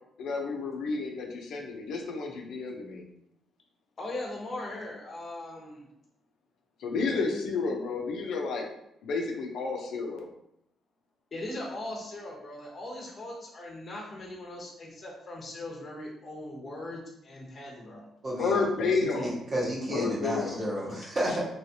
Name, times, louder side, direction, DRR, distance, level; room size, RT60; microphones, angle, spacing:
voice 1, 0.2-3.0 6.8-8.7 9.0-10.3 18.4-19.3 19.9-20.6, left 4 dB, 75° left, 1 dB, 0.6 m, -31 dB
voice 2, 4.0-5.8 7.0-7.5 11.3-18.1, left 1 dB, 40° left, -2 dB, 1.0 m, -39 dB
voice 3, 18.2-21.4, equal, 40° right, -6 dB, 1.2 m, -32 dB
3.2 x 3.0 x 2.8 m, 0.78 s
cardioid pair, 90°, 0 cm